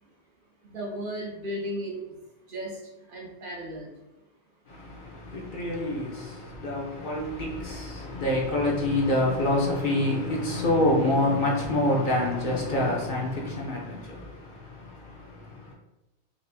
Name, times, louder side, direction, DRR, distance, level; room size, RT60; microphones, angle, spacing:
voice 1, 0.6-2.2 2.5-3.9 8.0-8.1, equal, 55° right, 0.7 m, -35 dB
voice 2, 4.7-15.7, left 1 dB, 50° left, 0.8 m, -27 dB
4.2 x 2.5 x 2.6 m
omnidirectional pair, 1.2 m